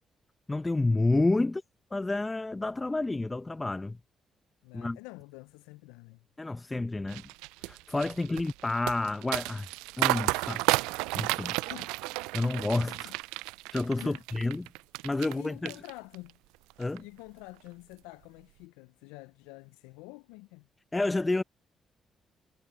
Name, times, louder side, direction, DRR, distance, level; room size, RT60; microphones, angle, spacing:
voice 1, 0.5-1.6 1.9-4.0 4.7-5.0 6.4-7.2 7.6-9.7 10.0-10.6 11.1-11.6 12.3-13.1 13.7-14.7 15.0-15.7 16.8-17.0 20.9-21.4, left 2 dB, 20° left, 0.8 m, -29 dB
voice 2, 4.6-6.2 8.2-8.4 11.6-12.0 12.3-13.1 14.0-14.2 15.2-16.4 17.0-20.7, left 24 dB, 80° left, 0.6 m, -48 dB
sound 1, 7.1-15.4 15.7-16.3 16.7-17.0, right 23 dB, 80° right, 0.3 m, -32 dB
hypercardioid pair, 45°, 0 cm